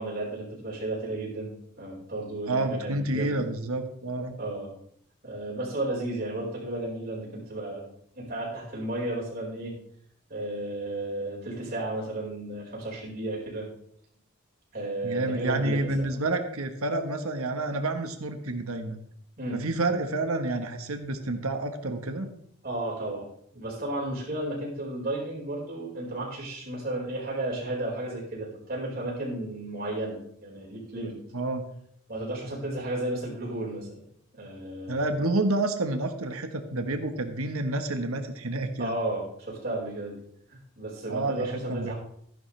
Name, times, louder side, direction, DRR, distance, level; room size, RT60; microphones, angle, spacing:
voice 1, 0.0-3.4 4.4-4.7 5.2-7.8 8.1-9.7 10.3-13.7 14.7-16.1 19.4-19.6 22.6-23.3 23.5-31.1 32.1-34.0 34.3-35.0 38.8-40.2 40.5-41.9, right 1 dB, 45° right, -4 dB, 4.9 m, -33 dB
voice 2, 2.5-4.3 15.0-19.0 19.5-22.3 31.3-31.7 34.9-39.0 41.1-41.9, right 2 dB, 80° right, 6 dB, 1.3 m, -29 dB
14.5 x 11.0 x 3.3 m, 0.68 s
head